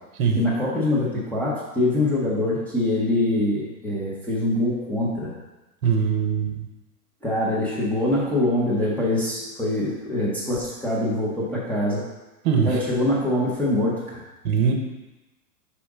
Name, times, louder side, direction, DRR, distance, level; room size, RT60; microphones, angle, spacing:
voice 1, 0.3-5.3 7.2-12.0 12.6-14.2, left 1 dB, 5° left, -8 dB, 0.7 m, -24 dB
voice 2, 5.8-6.7 12.4-12.7 14.4-14.7, right 6 dB, 60° right, 3 dB, 1.1 m, -21 dB
5.9 x 5.1 x 3.6 m, 1.1 s
hypercardioid pair, 145°, 48 cm